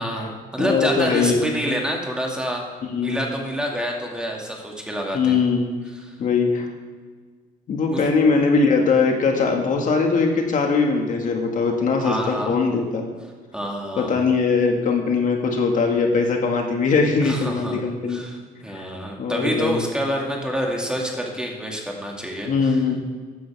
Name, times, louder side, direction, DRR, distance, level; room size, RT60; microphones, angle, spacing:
voice 1, 0.0-2.6 3.0-5.4 7.9-8.0 12.0-12.6 13.5-14.2 17.2-17.8 18.1-22.8, equal, 5° right, -1 dB, 2.1 m, -27 dB
voice 2, 0.6-1.5 2.8-3.2 5.1-5.7 6.2-6.7 7.7-13.1 14.0-18.2 18.7-18.9 19.2-19.8 22.4-23.0, left 4 dB, 50° left, 2 dB, 1.7 m, -21 dB
14.5 x 10.0 x 3.5 m, 1.5 s
cardioid pair, 110°, 17 cm